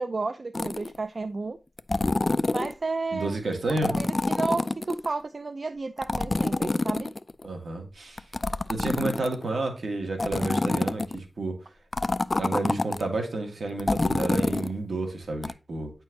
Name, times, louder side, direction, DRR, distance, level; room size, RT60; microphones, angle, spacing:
voice 1, 0.0-1.6 2.5-3.4 3.7-7.1, right 3 dB, 55° right, 10 dB, 0.4 m, -32 dB
sound 1, 0.5-1.0 1.8-2.7 3.7-5.1 6.0-7.5 8.2-9.5 10.2-11.2 11.9-13.0 13.8-14.7 15.4-15.5, left 2 dB, 40° left, 0.3 m, -27 dB
voice 2, 3.1-3.9 7.4-8.2 8.7-11.6 12.3-15.9, right 2 dB, 80° right, 3 dB, 1.9 m, -30 dB
9.1 x 4.5 x 2.9 m, 0.31 s
wide cardioid pair, 70°, 0 cm